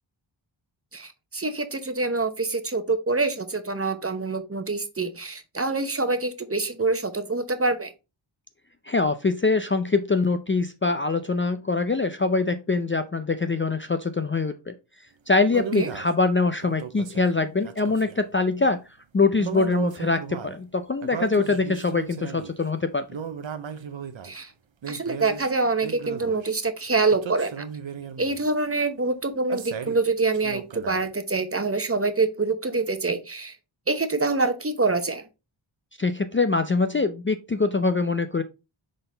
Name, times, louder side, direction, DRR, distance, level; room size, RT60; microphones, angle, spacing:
voice 1, 0.9-7.9 15.5-15.9 24.2-24.5 24.9-27.6 28.2-33.6 33.9-35.2, right 3 dB, 30° right, 9 dB, 0.9 m, -26 dB
voice 2, 8.9-14.7 15.3-18.8 19.1-23.0 36.0-38.4, left 3 dB, 25° left, 9 dB, 0.5 m, -23 dB
sound 1, 15.6-16.1 16.6-18.2 19.4-20.6 21.0-22.6 23.1-24.3 24.8-25.5 25.8-26.5 27.1-28.5 29.5-30.0 30.3-31.1, right 7 dB, 65° right, 0.8 m, -36 dB
6.4 x 3.9 x 3.8 m, 0.26 s
wide cardioid pair, 80°, 49 cm